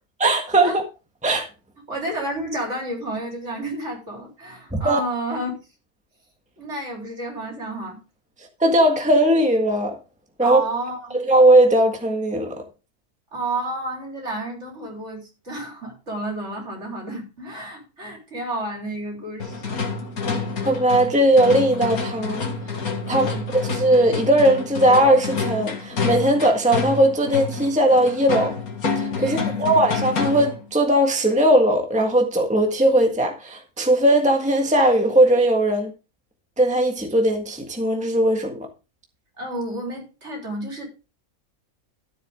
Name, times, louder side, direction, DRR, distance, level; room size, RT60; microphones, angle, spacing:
voice 1, 0.2-0.8 1.2-1.5 4.7-5.0 8.6-10.0 10.4-10.6 11.1-12.6 20.6-22.4 23.1-28.5 28.9-35.9 36.6-38.7, right 1 dB, 5° right, 1.6 m, -18 dB
voice 2, 1.9-5.5 6.6-8.0 10.4-11.2 13.3-19.8 23.1-23.5 29.2-29.6 39.4-40.9, right 1 dB, 50° right, 4.3 m, -31 dB
sound 1, 19.4-30.6, left 4 dB, 80° left, 2.4 m, -28 dB
13.5 x 7.9 x 3.7 m
omnidirectional pair, 1.5 m